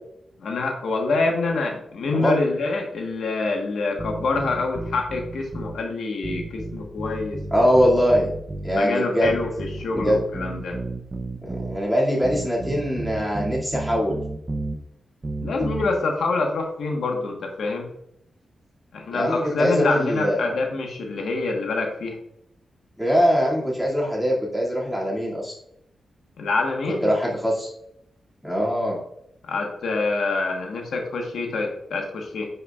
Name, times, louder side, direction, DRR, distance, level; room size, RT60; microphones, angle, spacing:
voice 1, 0.4-7.4 8.7-10.7 15.4-17.9 18.9-22.2 26.4-27.1 29.4-32.5, left 3 dB, 85° left, 1 dB, 1.2 m, -26 dB
sound 1, 4.0-5.8 6.2-8.8 9.2-11.8 12.2-14.8 15.2-15.9, right 2 dB, 25° right, 0.6 m, -32 dB
voice 2, 7.5-8.3 8.6-9.3 9.9-10.2 11.4-14.2 19.1-20.5 23.0-25.5 27.0-27.7 28.4-29.0, equal, ahead, -5 dB, 2.2 m, -22 dB
9.6 x 5.6 x 2.4 m, 0.77 s
wide cardioid pair, 120°, 0 cm